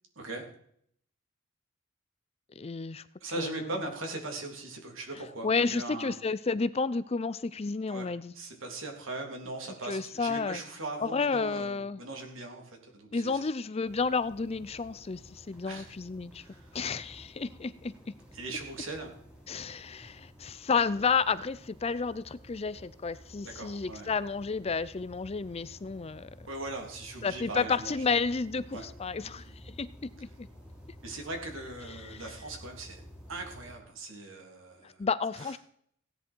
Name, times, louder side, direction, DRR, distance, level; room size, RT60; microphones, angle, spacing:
voice 1, 2.6-3.0 3.4-3.7 5.4-8.3 9.8-10.6 11.0-12.0 13.1-16.4 16.7-17.9 19.5-26.5 27.2-29.9 30.2-30.5 32.0-32.2 34.8-35.6, left 4 dB, 30° left, 16 dB, 0.5 m, -31 dB
voice 2, 3.2-6.1 7.9-8.1 8.3-13.5 15.6-15.9 16.4-16.8 18.3-19.1 23.4-24.1 26.5-28.0 28.7-28.9 29.2-29.5 31.0-33.0 33.3-35.1 35.4-35.5, right 2 dB, 70° right, 2 dB, 3.3 m, -40 dB
sound 1, 13.8-33.8, equal, 5° right, 3.8 m, -52 dB
16.5 x 10.0 x 4.6 m, 0.66 s
head